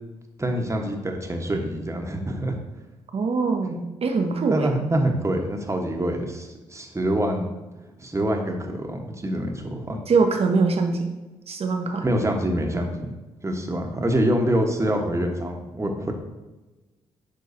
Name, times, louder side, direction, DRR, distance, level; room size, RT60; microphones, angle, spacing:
voice 1, 0.4-2.6 3.6-3.8 4.5-7.5 8.0-10.0 12.0-13.1 13.4-16.1, right 1 dB, 20° right, 2 dB, 1.2 m, -25 dB
voice 2, 3.1-4.8 10.1-11.1 11.5-12.0, right 4 dB, 45° right, 4 dB, 1.0 m, -23 dB
10.5 x 3.7 x 2.7 m, 1.1 s
hypercardioid pair, 40°, 14 cm